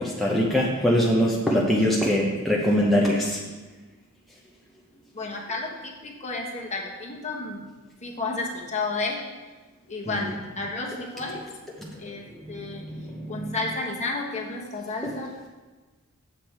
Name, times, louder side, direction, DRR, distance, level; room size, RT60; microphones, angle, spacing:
voice 1, 0.0-3.4 10.0-10.2 11.8-12.0 12.3-13.5 15.0-15.1, equal, ahead, -4 dB, 0.7 m, -23 dB
voice 2, 5.1-7.7 8.0-9.3 9.9-11.5 12.0-12.9 13.3-15.5, left 3 dB, 30° left, 0 dB, 1.2 m, -32 dB
8.1 x 7.4 x 4.4 m, 1.3 s
head